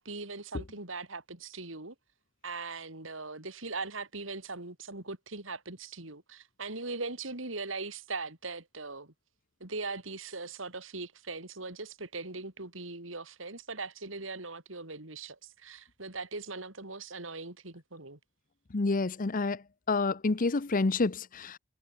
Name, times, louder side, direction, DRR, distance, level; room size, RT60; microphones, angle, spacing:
voice 1, 0.0-1.9 2.4-9.1 9.6-18.2, right 3 dB, 75° right, 4.5 m, -40 dB
voice 2, 18.7-19.6 19.9-21.6, left 3 dB, 45° left, 0.7 m, -28 dB
head